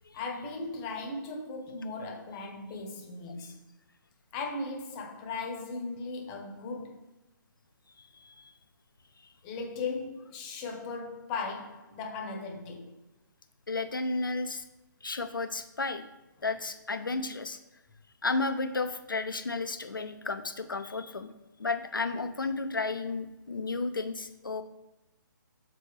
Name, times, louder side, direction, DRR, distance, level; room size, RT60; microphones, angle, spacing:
voice 1, 0.1-3.6 4.3-7.0 9.4-13.0, left 3 dB, 25° left, 1.0 m, -37 dB
voice 2, 8.0-8.6 9.2-9.3 13.7-14.6 15.0-16.0 16.4-17.6 18.2-21.3 21.6-24.6, left 3 dB, 80° left, 0.7 m, -33 dB
6.8 x 4.2 x 3.3 m
figure-of-eight pair, 135°, 11 cm